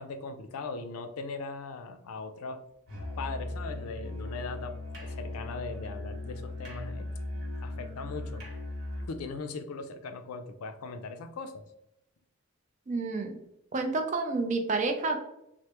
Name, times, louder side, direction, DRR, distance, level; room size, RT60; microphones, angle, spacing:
voice 1, 0.0-2.6 3.2-8.5 9.0-11.6, left 3 dB, 80° left, 7 dB, 0.4 m, -39 dB
Musical instrument, 2.9-9.2, left 2 dB, 50° right, 1.0 m, -38 dB
voice 2, 12.9-13.4 13.7-15.2, right 3 dB, 35° right, 5 dB, 0.4 m, -29 dB
3.2 x 2.1 x 2.8 m, 0.83 s
head